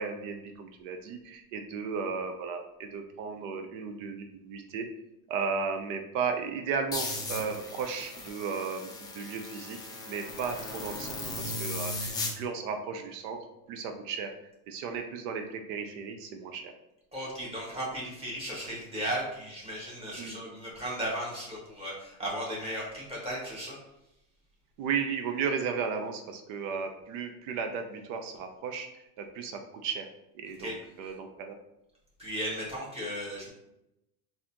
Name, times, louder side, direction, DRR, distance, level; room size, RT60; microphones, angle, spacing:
voice 1, 0.0-4.9 5.3-9.8 10.1-14.3 14.7-16.7 20.2-20.4 24.8-30.1 30.3-31.6, right 5 dB, 60° right, 6 dB, 0.6 m, -35 dB
sound 1, 6.9-12.3, left 2 dB, 10° left, 0.4 m, -37 dB
voice 2, 17.1-23.8 30.4-30.7 31.0-31.1 32.2-33.5, equal, 15° right, -6 dB, 1.5 m, -36 dB
4.0 x 2.7 x 2.8 m, 0.87 s
supercardioid pair, 120°, 44 cm